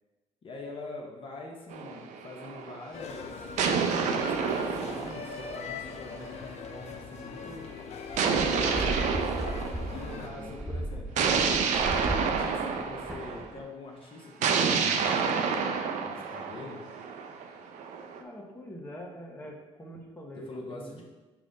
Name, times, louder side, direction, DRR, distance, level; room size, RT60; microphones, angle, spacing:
voice 1, 0.4-3.5 4.0-9.0 9.9-11.3 12.0-16.8 20.5-21.0, left 2 dB, 45° left, -1 dB, 1.1 m, -44 dB
sound 1, 1.7-2.8 3.6-6.2 8.2-10.3 11.2-13.5 14.4-18.2, right 5 dB, 70° right, 0.7 m, -29 dB
sound 2, 2.9-10.3, left 5 dB, 60° left, 0.7 m, -41 dB
sound 3, 8.1-13.6, right 1 dB, ahead, 0.5 m, -36 dB
voice 2, 10.1-10.6 18.2-21.0, equal, 15° left, -1 dB, 1.3 m, -44 dB
6.0 x 3.3 x 5.3 m, 1.2 s
cardioid pair, 85°, 13 cm